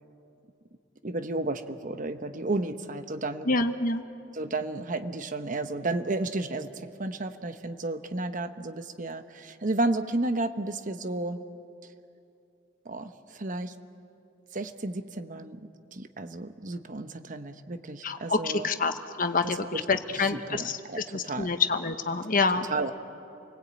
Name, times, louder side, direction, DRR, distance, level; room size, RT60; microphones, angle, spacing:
voice 1, 1.0-3.5 4.3-11.4 12.8-13.7 14.5-18.7 19.4-19.8 20.1-21.5 22.7-22.9, right 2 dB, 40° right, 9 dB, 1.0 m, -32 dB
voice 2, 3.5-4.0 18.0-20.8 21.1-22.7, left 4 dB, 45° left, 8 dB, 1.1 m, -27 dB
28.5 x 19.5 x 8.9 m, 2.7 s
head